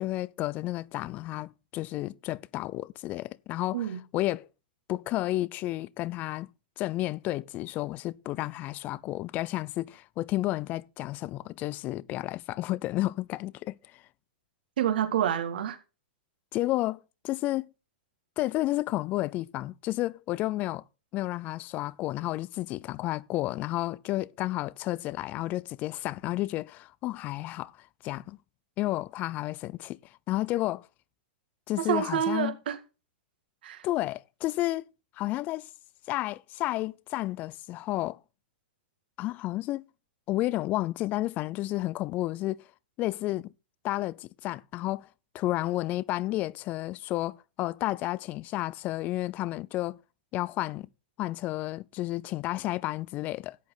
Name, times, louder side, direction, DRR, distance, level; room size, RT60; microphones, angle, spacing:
voice 1, 0.0-4.5 4.9-6.5 6.8-14.0 16.5-17.0 17.2-17.7 18.4-20.8 21.1-27.7 28.0-28.4 28.8-30.0 30.3-30.9 31.7-32.6 33.8-34.9 35.2-35.7 36.1-38.2 39.2-39.8 40.3-42.6 43.0-43.5 43.8-45.1 45.3-50.0 50.3-50.9 51.2-53.6, left 17 dB, 30° left, 0.4 m, -31 dB
voice 2, 14.8-15.8 31.8-32.8 33.6-33.8, right 10 dB, 75° right, 2.1 m, -28 dB
11.5 x 8.5 x 3.9 m
hypercardioid pair, 140°, 5 cm